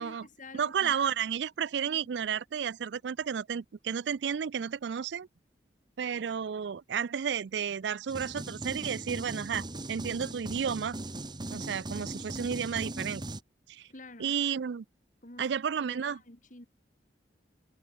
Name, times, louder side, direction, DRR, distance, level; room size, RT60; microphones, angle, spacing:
voice 1, 0.0-0.9 1.8-2.0 13.9-14.3 15.2-15.6 15.9-16.7, left 2 dB, 45° left, 4.1 m, -49 dB
voice 2, 0.5-5.3 6.0-11.0 11.5-13.2 13.7-13.9 14.2-14.8 15.4-16.2, right 7 dB, 75° right, 0.4 m, -32 dB
sound 1, 8.1-13.4, right 1 dB, 25° right, 1.8 m, -39 dB
head